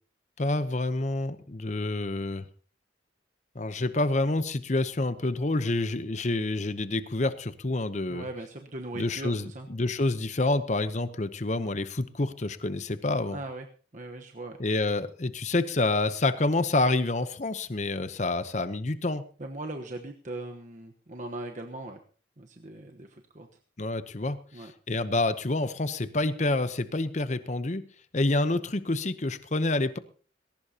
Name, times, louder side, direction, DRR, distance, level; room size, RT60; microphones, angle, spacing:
voice 1, 0.4-2.4 3.5-8.3 8.9-13.4 14.6-19.2 23.8-27.8 28.1-30.0, left 2 dB, 40° left, 12 dB, 0.8 m, -28 dB
voice 2, 8.1-9.7 13.3-13.7 13.9-14.6 19.4-22.0 22.4-23.5 24.5-24.7, right 2 dB, 40° right, 3 dB, 1.2 m, -39 dB
19.5 x 18.0 x 2.9 m, 0.41 s
head